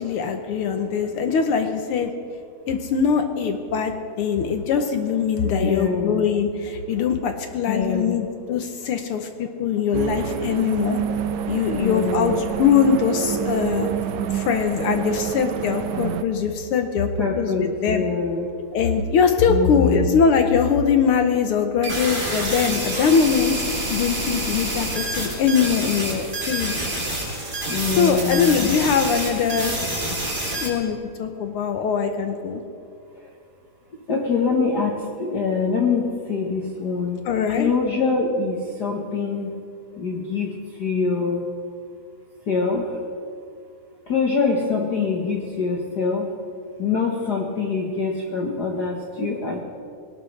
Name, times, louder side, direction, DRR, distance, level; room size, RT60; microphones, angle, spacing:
voice 1, 0.0-2.1 2.7-11.0 11.5-13.9 14.3-17.1 17.4-18.0 18.7-23.5 23.9-26.9 27.3-27.4 28.0-29.8 30.6-32.6 37.2-37.7, left 6 dB, 70° left, 6 dB, 1.4 m, -22 dB
voice 2, 5.5-6.3 7.7-8.2 11.7-12.4 17.2-18.5 19.5-20.2 27.7-28.7 34.1-37.2 37.5-39.6 40.0-41.5 42.5-43.0 44.1-46.3 46.8-49.6, left 4 dB, 50° left, -1 dB, 1.2 m, -24 dB
sound 1, 9.9-16.2, right 8 dB, 75° right, 1.9 m, -28 dB
sound 2, 21.8-30.7, right 1 dB, 20° right, 3.0 m, -27 dB
20.5 x 18.5 x 3.3 m, 2.4 s
omnidirectional pair, 3.4 m